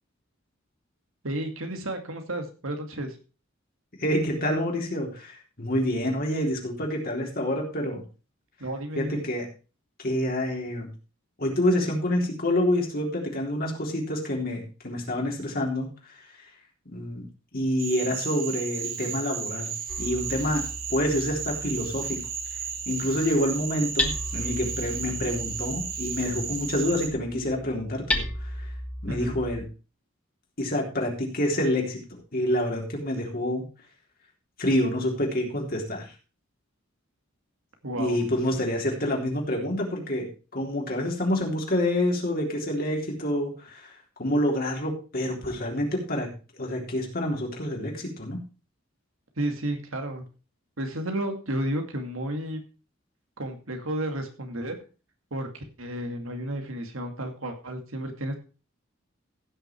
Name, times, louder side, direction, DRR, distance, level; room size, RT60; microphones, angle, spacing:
voice 1, 1.2-3.2 8.6-9.2 29.1-29.3 37.8-38.2 49.4-50.3 50.8-52.6 53.4-54.8 55.3-58.3, right 1 dB, 85° right, 5 dB, 2.4 m, -32 dB
voice 2, 4.0-8.0 9.0-9.5 10.0-10.9 11.4-16.5 16.9-17.3 17.5-19.7 20.0-20.6 20.9-22.2 22.9-28.7 29.0-29.7 30.6-32.0 32.3-33.7 34.6-36.1 37.9-43.9 44.2-46.3 46.6-48.4, left 1 dB, 45° left, 0 dB, 3.7 m, -27 dB
Cricket / Frog, 17.8-27.1, right 7 dB, 45° right, 1.8 m, -34 dB
Hammer, 19.9-29.6, left 1 dB, 5° left, 1.4 m, -35 dB
15.5 x 6.5 x 4.6 m, 0.34 s
head